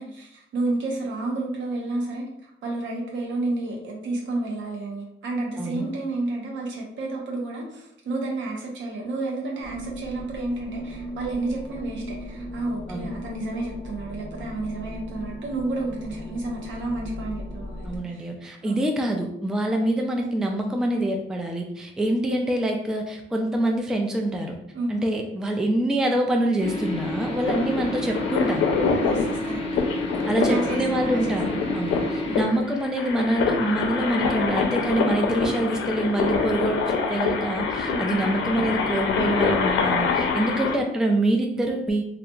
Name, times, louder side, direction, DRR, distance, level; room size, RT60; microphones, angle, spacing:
voice 1, 0.0-18.3 18.6-18.8 24.7-25.2 27.5-27.7 29.0-29.8 30.3-32.7 37.9-38.3 40.3-40.7, right 2 dB, 70° right, -1 dB, 0.8 m, -31 dB
voice 2, 5.6-5.9 12.9-13.1 17.9-24.6 24.9-28.7 30.3-42.0, right 1 dB, 5° right, 2 dB, 0.3 m, -25 dB
sound 1, 9.6-18.0, equal, 25° right, 1.2 m, -37 dB
sound 2, 26.6-32.4, left 2 dB, 30° left, 0.8 m, -30 dB
sound 3, 27.4-40.8, left 5 dB, 85° left, 0.5 m, -26 dB
2.8 x 2.4 x 2.2 m, 0.77 s
cardioid pair, 90°, 20 cm